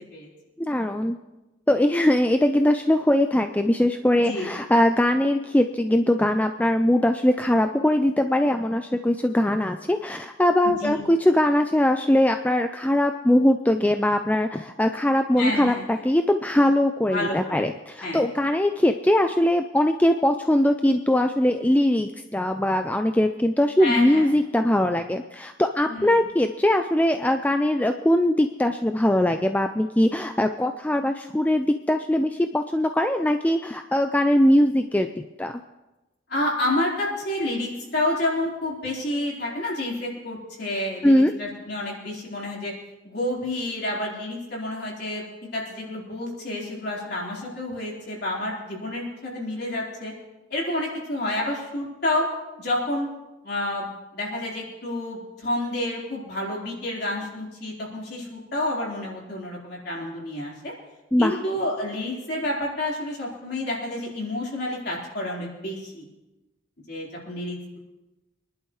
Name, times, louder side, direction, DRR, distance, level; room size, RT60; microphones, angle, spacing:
voice 1, 0.6-1.2 1.7-35.1 35.4-35.5 41.0-41.3 61.1-61.4, left 1 dB, 10° left, 6 dB, 0.3 m, -21 dB
voice 2, 10.6-11.0 15.4-15.8 17.1-17.6 18.0-18.2 23.8-24.3 25.9-26.1 36.3-42.7 43.0-45.2 45.5-50.1 50.5-52.3 52.6-53.1 53.4-53.9 54.1-60.7 61.2-66.0 66.9-67.8, left 1 dB, 50° left, -4 dB, 4.1 m, -29 dB
25.0 x 11.5 x 3.2 m, 1.0 s
head